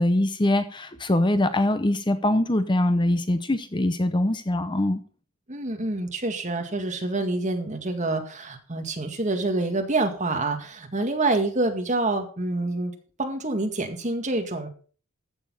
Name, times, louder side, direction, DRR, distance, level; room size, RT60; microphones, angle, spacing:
voice 1, 0.0-5.0, left 1 dB, 20° left, 0.8 m, -23 dB
voice 2, 5.5-12.9 13.2-14.7, right 2 dB, 35° right, 2.0 m, -27 dB
14.5 x 7.0 x 5.6 m
head